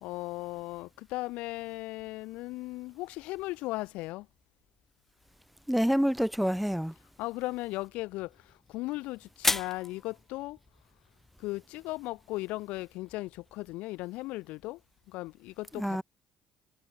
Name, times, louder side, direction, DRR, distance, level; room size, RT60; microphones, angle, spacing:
voice 1, 0.0-4.3 7.2-8.3 8.7-10.6 11.4-14.8 15.1-16.0, left 20 dB, 85° left, 2.8 m, -37 dB
voice 2, 5.7-6.9 15.7-16.0, equal, ahead, 1.4 m, -27 dB
sound 1, 7.8-13.7, left 2 dB, 15° left, 1.6 m, -38 dB
supercardioid pair, 80°, 2 cm